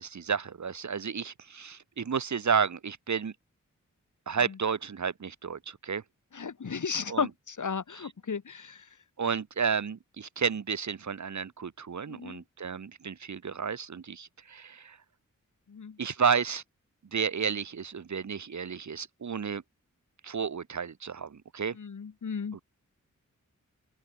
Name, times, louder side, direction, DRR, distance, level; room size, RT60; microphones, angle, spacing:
voice 1, 0.0-3.3 4.3-6.0 7.1-7.3 9.2-15.0 16.0-16.6 17.1-19.6 20.2-21.8, right 6 dB, 65° right, 1.4 m, -31 dB
voice 2, 6.3-8.9 12.1-12.4 15.7-16.0 21.8-22.6, left 6 dB, 70° left, 3.0 m, -34 dB
open air
cardioid pair, 50°, 31 cm